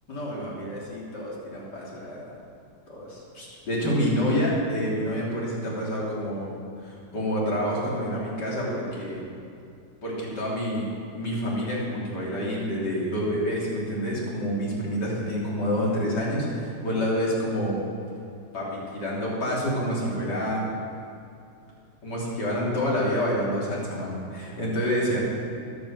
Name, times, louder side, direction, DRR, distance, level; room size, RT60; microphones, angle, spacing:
voice 1, 0.1-2.3 2.9-6.5 6.8-9.2 10.0-10.9 11.1-17.8 18.5-20.7 22.0-25.2, equal, 90° left, -5 dB, 3.9 m, -28 dB
13.0 x 12.0 x 6.6 m, 2.5 s
omnidirectional pair, 1.8 m